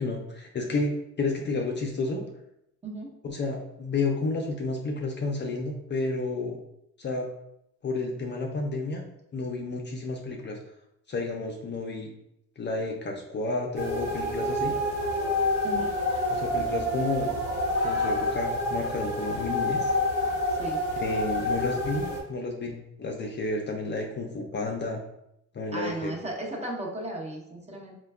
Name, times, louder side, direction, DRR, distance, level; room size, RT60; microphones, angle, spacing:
voice 1, 0.0-2.2 3.2-6.6 7.0-7.3 7.8-9.1 9.3-10.6 11.1-12.1 12.6-14.8 16.3-17.4 17.8-19.9 21.0-25.0 25.5-26.1, left 3 dB, 35° left, 1 dB, 0.5 m, -31 dB
sound 1, 13.7-22.2, left 1 dB, 85° right, 0.9 m, -28 dB
voice 2, 15.6-15.9 20.5-20.8 25.7-27.9, right 1 dB, 20° right, -1 dB, 0.8 m, -35 dB
4.3 x 2.1 x 2.3 m, 0.80 s
cardioid pair, 90°, 30 cm